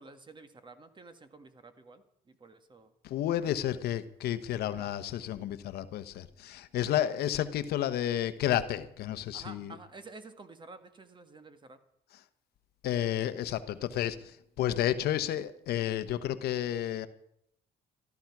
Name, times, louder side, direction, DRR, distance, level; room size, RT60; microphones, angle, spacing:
voice 1, 0.0-2.9 4.6-4.9 7.0-7.1 9.3-11.8 14.7-14.9, right 3 dB, 30° right, 1.6 m, -51 dB
voice 2, 3.0-9.7 12.8-17.1, left 11 dB, 70° left, 1.0 m, -31 dB
14.5 x 13.0 x 6.0 m
cardioid pair, 110°, 17 cm